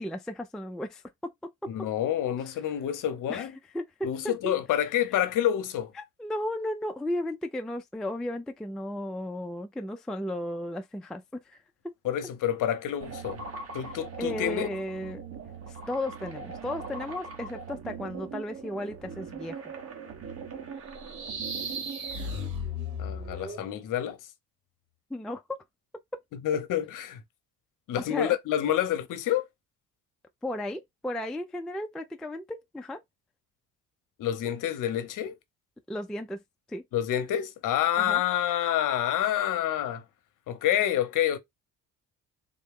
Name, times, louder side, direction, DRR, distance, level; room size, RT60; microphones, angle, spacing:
voice 1, 0.0-1.7 3.3-3.5 3.7-4.8 6.0-11.6 11.8-11.9 14.2-15.2 15.7-19.6 25.1-25.6 27.9-28.4 30.4-33.0 35.9-36.4 36.7-36.8 38.0-38.2, left 1 dB, ahead, 0.3 m, -35 dB
voice 2, 1.7-3.5 4.0-5.9 12.0-13.4 13.7-14.7 23.0-24.2 26.4-27.2 27.9-29.5 34.2-35.4 36.9-40.0 40.5-41.4, left 11 dB, 60° left, 0.8 m, -28 dB
sound 1, 13.0-22.5, right 5 dB, 40° right, 1.2 m, -41 dB
sound 2, 20.9-23.7, left 2 dB, 70° right, 2.2 m, -35 dB
3.7 x 2.2 x 3.5 m
cardioid pair, 115°, 36 cm